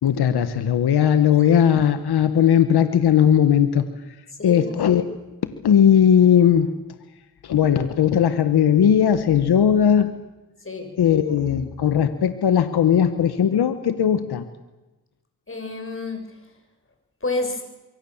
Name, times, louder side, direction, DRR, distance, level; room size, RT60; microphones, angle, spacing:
voice 1, 0.0-3.9 4.4-5.0 5.6-6.7 7.4-10.1 11.0-14.4, left 9 dB, 90° left, 10 dB, 1.4 m, -18 dB
voice 2, 4.4-4.7 10.6-11.0 15.5-16.4 17.2-17.6, left 3 dB, 35° left, 5 dB, 6.4 m, -29 dB
25.0 x 23.5 x 7.3 m, 1.1 s
cardioid pair, 60°, 38 cm